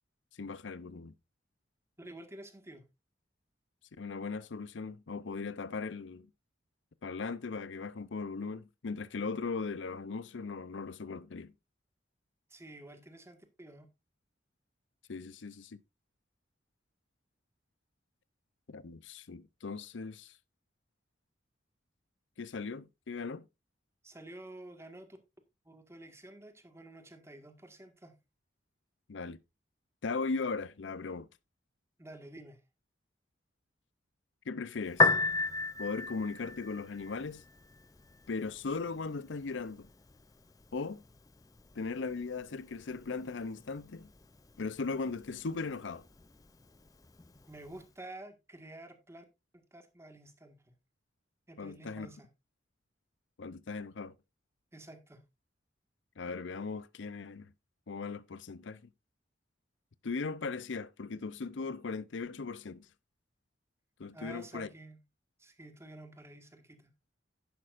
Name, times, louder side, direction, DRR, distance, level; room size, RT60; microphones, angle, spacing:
voice 1, 0.4-1.1 4.0-6.3 7.0-11.5 15.1-15.8 18.7-20.4 22.4-23.4 29.1-29.4 30.0-31.3 34.5-35.1 35.8-37.4 38.3-39.9 40.7-41.0 41.7-44.1 44.6-46.1 51.6-52.1 53.4-54.1 56.2-57.5 57.9-58.9 60.0-62.9 64.0-64.7, left 4 dB, 75° left, 0.6 m, -38 dB
voice 2, 2.0-2.8 12.5-13.9 24.0-25.2 25.6-28.2 32.0-32.6 47.5-49.2 49.5-50.6 51.5-52.3 54.7-55.2 64.1-65.0 65.4-66.9, right 1 dB, 15° right, 1.7 m, -50 dB
Piano, 34.9-47.9, left 3 dB, 20° left, 0.5 m, -37 dB
11.5 x 10.0 x 2.5 m
head